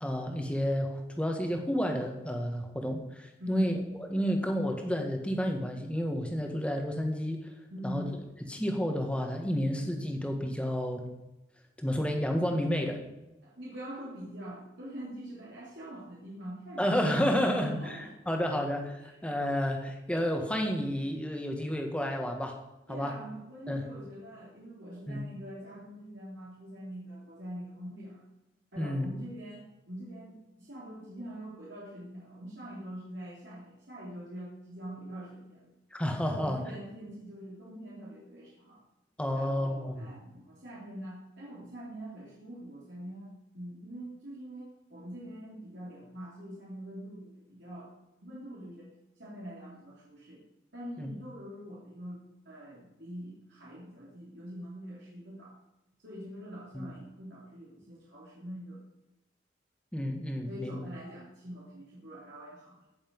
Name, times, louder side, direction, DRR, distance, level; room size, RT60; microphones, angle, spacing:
voice 1, 0.0-3.7 4.0-7.5 7.8-8.0 8.5-11.1 11.8-13.0 16.8-22.6 22.9-23.1 23.7-23.8 25.1-25.2 28.8-29.1 35.9-36.6 39.2-40.1 51.0-51.1 56.7-56.9 59.9-60.8, equal, 5° left, 2 dB, 1.7 m, -31 dB
voice 2, 3.4-3.7 7.7-8.1 13.4-18.4 19.0-19.1 22.9-28.2 28.7-35.7 36.2-38.8 39.3-47.9 48.2-50.4 50.7-55.6 56.0-58.8 60.5-62.7, equal, 75° right, -6 dB, 3.3 m, -44 dB
16.5 x 7.1 x 5.5 m, 0.95 s
head